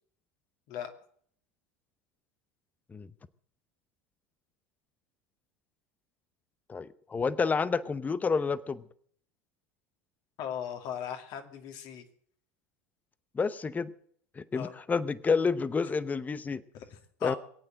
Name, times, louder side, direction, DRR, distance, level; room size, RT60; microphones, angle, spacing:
voice 1, 6.7-8.8 13.3-13.9 14.4-16.6 17.2-17.4, left 5 dB, 20° left, 16 dB, 0.8 m, -29 dB
voice 2, 10.4-12.0 14.5-14.8 16.7-17.4, left 9 dB, 55° left, 5 dB, 2.4 m, -38 dB
21.0 x 8.9 x 7.5 m, 0.62 s
hypercardioid pair, 85°, 8 cm